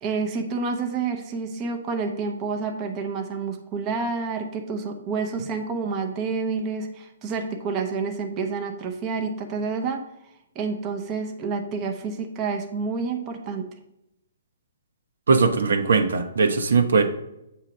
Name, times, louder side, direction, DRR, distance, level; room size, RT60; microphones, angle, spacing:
voice 1, 0.0-10.0 10.6-13.7, right 4 dB, 20° right, 3 dB, 0.7 m, -29 dB
voice 2, 15.3-17.0, right 4 dB, 85° right, 5 dB, 0.9 m, -20 dB
8.0 x 2.9 x 6.1 m, 0.85 s
hypercardioid pair, 165°, 0 cm